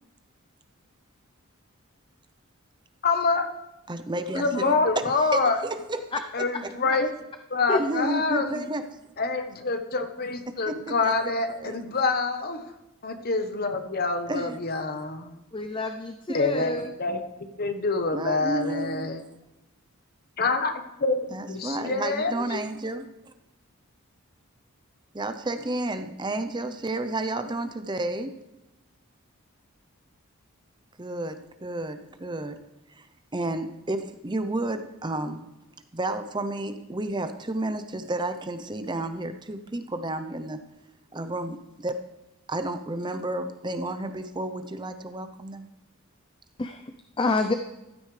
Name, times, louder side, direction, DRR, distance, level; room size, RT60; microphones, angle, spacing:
voice 1, 3.0-3.5 4.3-5.6 6.3-7.1 7.5-8.6 9.2-12.6 13.0-15.4 16.3-19.2 20.4-22.6, left 3 dB, 45° left, 7 dB, 1.1 m, -26 dB
voice 2, 3.9-6.1 6.6-6.7 7.8-8.8 10.7-11.8 14.3-14.6 16.4-16.5 18.1-19.1 21.3-23.3 25.1-28.3 31.0-32.6 32.9-33.1 33.3-35.5 35.9-40.6 41.1-42.0 42.5-45.7, right 2 dB, 20° right, 9 dB, 0.6 m, -31 dB
voice 3, 15.5-16.9 46.6-47.5, left 3 dB, 20° left, 7 dB, 0.5 m, -28 dB
15.0 x 13.0 x 3.3 m, 0.98 s
head